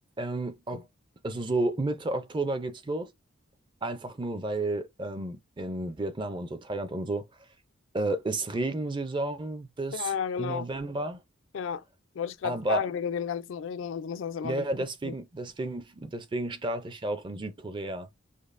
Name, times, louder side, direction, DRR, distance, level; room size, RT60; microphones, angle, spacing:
voice 1, 0.2-0.8 1.2-3.1 3.8-7.2 7.9-10.1 10.4-11.2 12.4-12.8 14.4-18.1, right 2 dB, 20° right, 0.4 m, -32 dB
voice 2, 9.9-10.7 11.5-11.8 12.2-14.7 15.0-15.2, left 7 dB, 65° left, 0.3 m, -32 dB
5.1 x 2.0 x 2.5 m
head